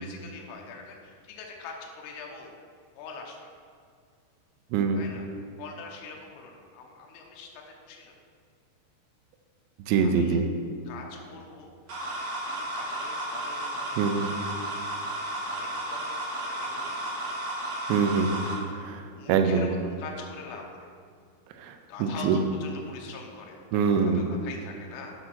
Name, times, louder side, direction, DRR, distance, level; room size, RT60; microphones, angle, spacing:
voice 1, 0.0-2.5 3.0-3.4 4.9-5.3 5.6-8.1 10.0-10.4 10.9-11.7 12.5-14.2 15.5-17.2 19.2-20.9 21.9-23.6 23.9-25.1, left 4 dB, 75° left, 0 dB, 2.6 m, -43 dB
voice 2, 4.7-5.0 9.9-10.5 14.0-14.3 17.9-19.7 21.6-22.4 23.7-24.3, right 5 dB, 85° right, 6 dB, 2.6 m, -25 dB
sound 1, 11.9-18.5, right 1 dB, 55° right, 2.8 m, -33 dB
8.0 x 5.0 x 6.0 m, 2.1 s
omnidirectional pair, 5.6 m